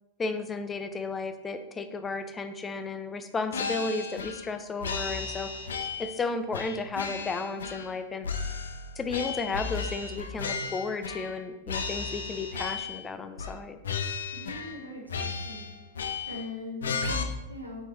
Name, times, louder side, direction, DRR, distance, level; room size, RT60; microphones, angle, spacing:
voice 1, 0.2-5.5 6.0-8.3 9.0-13.8, left 4 dB, 20° left, 9 dB, 0.6 m, -33 dB
sound 1, 3.5-4.5 4.8-6.2 6.5-8.0 8.2-11.4 11.7-13.0 13.4-13.6 13.8-14.8 15.1-16.5 16.8-17.2, left 5 dB, 65° left, 0.7 m, -34 dB
voice 2, 14.3-15.7 15.9-17.8, left 2 dB, 85° right, 0 dB, 1.5 m, -41 dB
6.3 x 5.4 x 4.3 m, 1.0 s
figure-of-eight pair, 90°, 0 cm